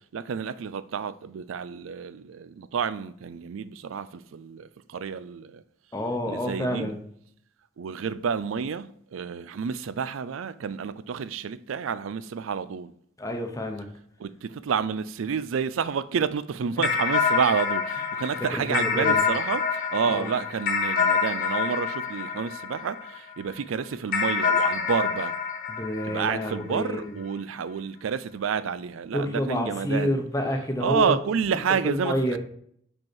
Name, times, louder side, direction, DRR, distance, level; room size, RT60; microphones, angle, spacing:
voice 1, 0.1-5.6 6.3-6.9 7.8-12.9 14.2-25.3 26.1-30.2 30.8-32.4, right 6 dB, 90° right, 0.4 m, -29 dB
voice 2, 5.9-7.0 13.2-13.9 18.5-19.2 20.1-20.3 25.7-27.1 29.1-31.1 31.8-32.4, left 1 dB, 15° left, 0.9 m, -28 dB
sound 1, 16.8-23.4 24.1-26.9, left 5 dB, 45° left, 1.0 m, -27 dB
5.5 x 5.3 x 4.5 m
head